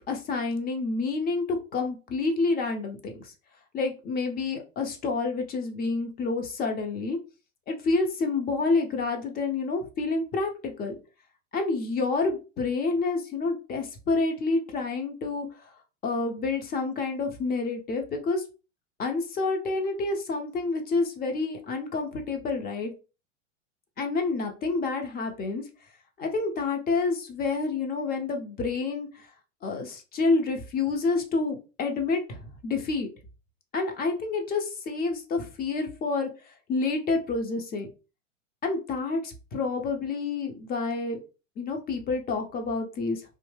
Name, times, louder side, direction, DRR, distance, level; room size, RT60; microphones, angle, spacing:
voice 1, 0.1-1.4 1.7-3.3 3.7-7.2 7.7-11.0 11.5-15.7 16.0-18.4 19.0-22.9 24.0-25.6 26.2-29.1 29.6-33.1 33.7-37.9 38.6-41.2 41.6-43.4, left 3 dB, 25° left, 4 dB, 0.6 m, -28 dB
2.7 x 2.1 x 3.1 m, 0.32 s
hypercardioid pair, 100°, 38 cm